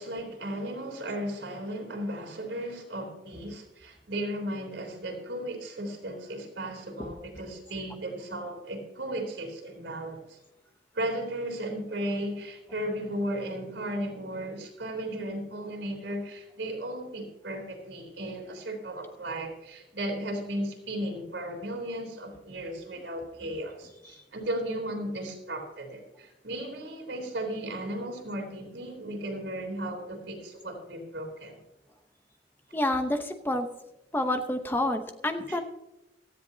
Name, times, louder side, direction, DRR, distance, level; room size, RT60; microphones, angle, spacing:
voice 1, 0.0-10.4 10.9-31.6 35.5-35.6, right 1 dB, 85° right, 1 dB, 3.6 m, -35 dB
voice 2, 32.7-33.7 34.1-35.6, left 1 dB, 10° left, 6 dB, 0.9 m, -28 dB
17.5 x 13.5 x 2.8 m, 0.92 s
head